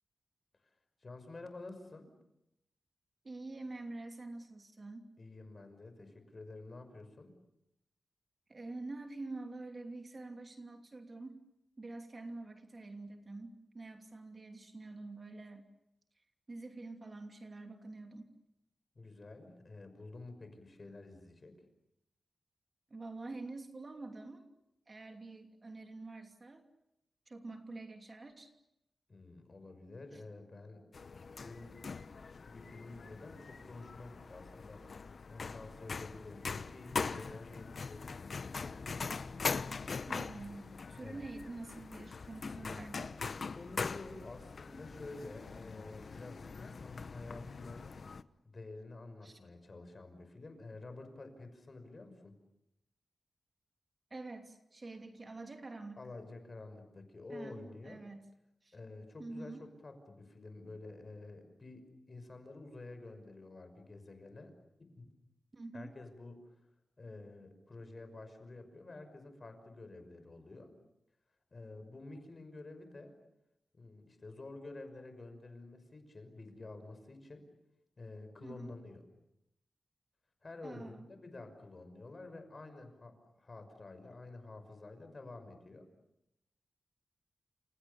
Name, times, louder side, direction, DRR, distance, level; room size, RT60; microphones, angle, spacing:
voice 1, 1.0-2.1 5.2-7.3 19.0-21.5 29.1-30.8 31.4-31.8 32.4-34.8 35.3-38.9 41.0-41.2 43.5-47.9 48.4-52.3 56.0-58.0 58.7-64.5 64.9-65.1 65.7-66.5 67.0-70.7 71.5-73.2 73.7-77.5 78.0-79.0 80.4-85.9, left 2 dB, 40° left, 8 dB, 5.9 m, -50 dB
voice 2, 3.2-5.1 8.5-11.4 11.8-15.7 16.5-18.3 22.9-24.5 24.9-26.7 27.3-28.5 30.1-30.2 40.1-43.2 49.2-49.4 54.1-56.0 57.3-58.3 58.6-58.8 59.2-59.6 65.5-65.9 78.4-78.7 80.6-81.1, right 2 dB, 35° right, 5 dB, 2.8 m, -46 dB
sound 1, 30.9-48.2, left 4 dB, 55° left, 1.0 m, -42 dB
29.5 x 28.0 x 7.1 m, 0.84 s
wide cardioid pair, 115°, 0 cm